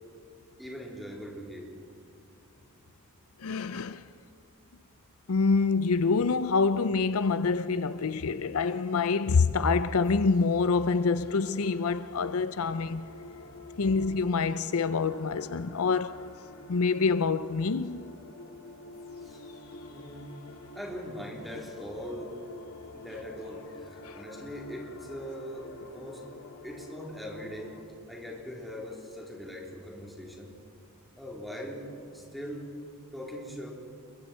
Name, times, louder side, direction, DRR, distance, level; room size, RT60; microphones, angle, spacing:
voice 1, 0.6-1.7 13.2-13.5 19.2-19.4 19.9-20.3 20.7-22.4 22.9-23.7 24.1-26.2 26.6-27.8 28.1-30.5 31.2-32.7 33.1-33.7, equal, ahead, 3.7 m, -41 dB
voice 2, 3.4-4.0 5.3-13.1 13.8-16.3 16.7-18.1 24.0-24.2, left 4 dB, 70° left, 0.6 m, -26 dB
sound 1, 10.0-27.8, left 2 dB, 90° left, 2.1 m, -48 dB
28.5 x 23.0 x 4.5 m
head